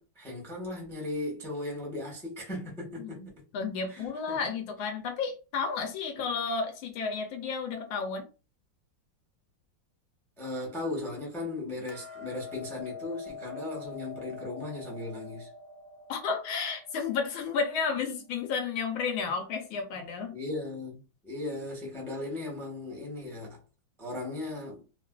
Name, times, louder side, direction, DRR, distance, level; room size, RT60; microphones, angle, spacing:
voice 1, 0.0-3.2 3.9-4.4 10.4-15.5 20.3-23.6 24.0-24.8, left 2 dB, 5° left, 0.4 m, -37 dB
voice 2, 3.0-8.3 16.1-20.4, left 5 dB, 80° left, 1.4 m, -32 dB
Hammer, 11.9-18.1, left 5 dB, 80° right, 0.9 m, -45 dB
3.4 x 2.4 x 2.2 m
omnidirectional pair, 2.2 m